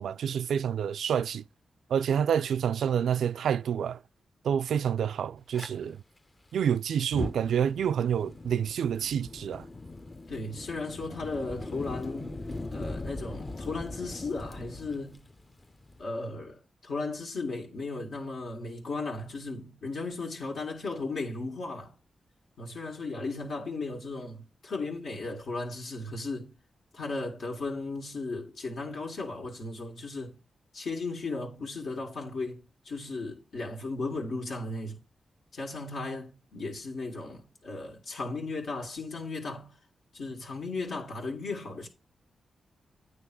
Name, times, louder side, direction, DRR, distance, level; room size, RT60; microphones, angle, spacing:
voice 1, 0.0-1.4 1.9-4.0 4.4-6.0 6.5-9.6, right 8 dB, 85° right, 0.3 m, -28 dB
Fire, 5.5-5.7 7.0-16.0, left 2 dB, 30° left, 0.7 m, -40 dB
voice 2, 10.3-12.3 12.7-15.2 16.0-21.9 22.6-26.5 26.9-30.4 30.7-35.0 35.5-39.7 40.1-41.9, left 3 dB, 80° left, 2.0 m, -36 dB
9.2 x 3.2 x 6.1 m
cardioid pair, 60°, 0 cm